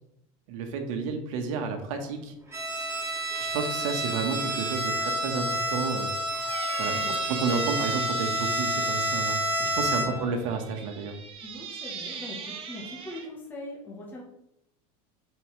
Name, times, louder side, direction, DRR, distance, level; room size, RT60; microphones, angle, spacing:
voice 1, 0.5-2.3 3.5-6.1 6.8-11.2, right 5 dB, 70° right, 4 dB, 1.3 m, -31 dB
Bowed string instrument, 2.5-10.3, right 1 dB, 15° right, 1.4 m, -29 dB
Squeak, 6.3-9.4 10.2-13.3, right 6 dB, 30° right, 1.0 m, -39 dB
voice 2, 6.9-7.3 10.0-10.3 11.4-14.2, left 1 dB, 10° left, -3 dB, 1.1 m, -41 dB
7.7 x 4.6 x 3.2 m, 0.81 s
supercardioid pair, 155°, 18 cm